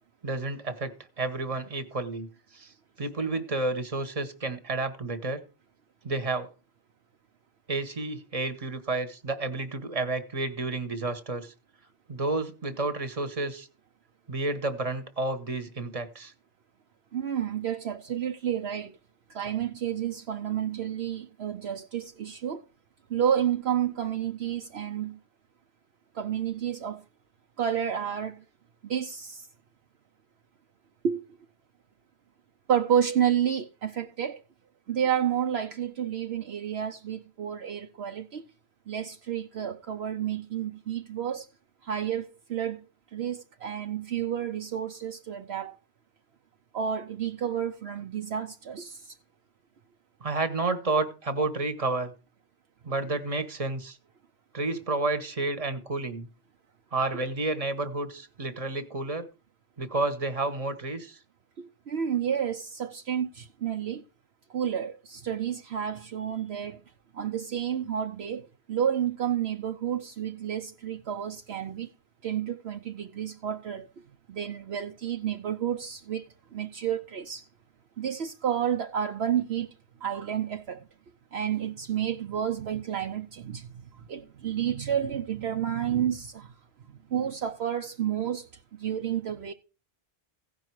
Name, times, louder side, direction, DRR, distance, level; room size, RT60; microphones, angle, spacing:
voice 1, 0.2-2.7 3.0-5.4 6.0-6.5 7.7-11.5 12.1-13.7 14.3-16.3 50.2-52.1 52.8-54.0 54.5-56.3 56.9-59.3 59.8-61.2, right 2 dB, 30° right, 1.2 m, -30 dB
voice 2, 17.1-19.0 19.3-22.6 23.1-25.2 26.1-27.0 27.6-28.4 28.8-29.5 31.0-31.4 32.7-34.4 34.9-38.4 38.9-41.5 41.8-42.8 43.1-45.8 46.7-49.1 61.6-64.0 64.5-66.8 67.1-71.9 72.2-73.9 74.3-76.2 76.5-77.5 78.0-79.7 80.0-80.8 81.3-83.7 83.9-86.5 87.1-88.5 88.8-89.5, right 9 dB, 65° right, 0.9 m, -30 dB
16.0 x 5.5 x 4.6 m
omnidirectional pair, 1.2 m